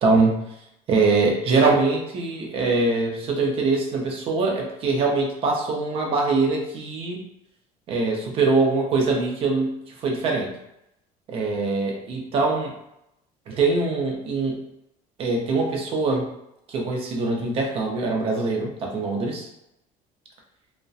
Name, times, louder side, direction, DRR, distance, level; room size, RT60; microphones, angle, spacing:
voice 1, 0.0-0.4 0.9-7.3 7.9-9.7 10.0-10.6 11.3-12.7 13.5-14.6 15.2-16.3 16.7-19.5, right 3 dB, 40° right, 1 dB, 0.5 m, -23 dB
2.6 x 2.1 x 2.3 m, 0.82 s
cardioid pair, 160°, 15 cm